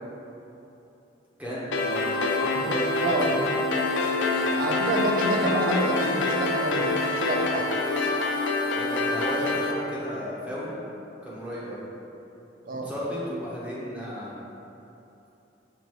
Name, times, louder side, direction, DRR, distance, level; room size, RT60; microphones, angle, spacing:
voice 1, 1.4-3.3 8.7-10.8 11.2-11.8 12.7-14.4, equal, 5° right, -8 dB, 0.9 m, -34 dB
sound 1, 1.7-9.7, left 2 dB, 80° left, 0.5 m, -26 dB
voice 2, 3.0-3.5 4.5-7.7 12.7-12.9, right 1 dB, 50° right, 1 dB, 0.4 m, -28 dB
6.2 x 2.5 x 3.0 m, 2.9 s
head